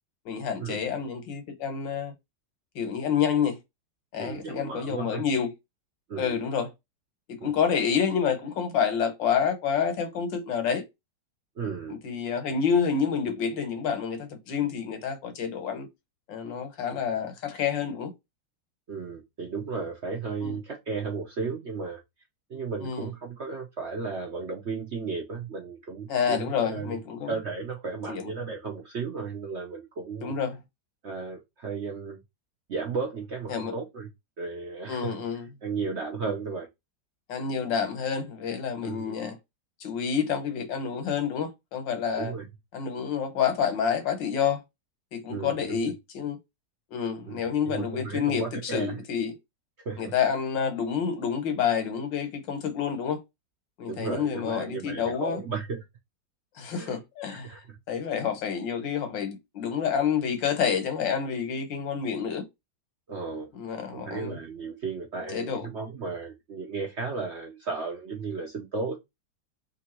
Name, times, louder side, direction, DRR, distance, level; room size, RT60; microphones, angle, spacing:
voice 1, 0.3-2.1 2.8-3.6 4.1-5.5 6.2-6.7 7.3-10.8 11.9-15.9 16.3-18.1 20.4-20.6 22.8-23.1 26.1-27.3 28.1-28.3 30.2-30.6 33.5-33.7 34.9-35.5 37.3-39.4 39.8-42.3 42.7-44.6 45.1-46.4 46.9-49.3 50.0-53.2 53.8-55.4 56.6-62.4 63.5-64.4 65.3-65.7, left 7 dB, 85° left, 1.8 m, -28 dB
voice 2, 4.2-5.2 6.1-6.4 7.4-7.5 11.6-12.0 18.9-22.0 22.5-27.0 27.3-30.3 31.0-32.2 32.7-34.1 34.4-35.2 35.6-36.7 38.8-39.2 42.2-42.5 45.3-45.9 47.3-49.0 49.8-50.1 53.8-55.8 56.7-57.0 57.3-57.8 63.1-63.5 63.9-69.1, right 4 dB, 55° right, 0.8 m, -34 dB
3.5 x 2.7 x 4.3 m
omnidirectional pair, 1.9 m